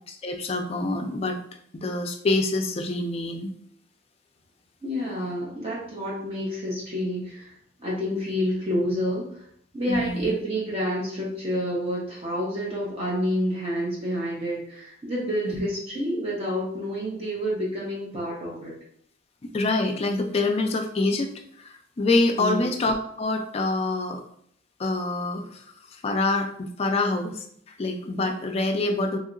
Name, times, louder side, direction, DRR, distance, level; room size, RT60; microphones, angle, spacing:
voice 1, 0.1-1.4 1.7-3.5 9.9-10.3 15.4-15.6 19.4-21.3 21.6-24.2 24.8-27.4 27.8-29.2, left 2 dB, 30° left, 4 dB, 0.4 m, -26 dB
voice 2, 4.8-7.5 7.8-9.3 9.7-18.7 22.4-22.7, equal, 30° right, -6 dB, 0.8 m, -28 dB
3.0 x 2.7 x 2.5 m, 0.66 s
head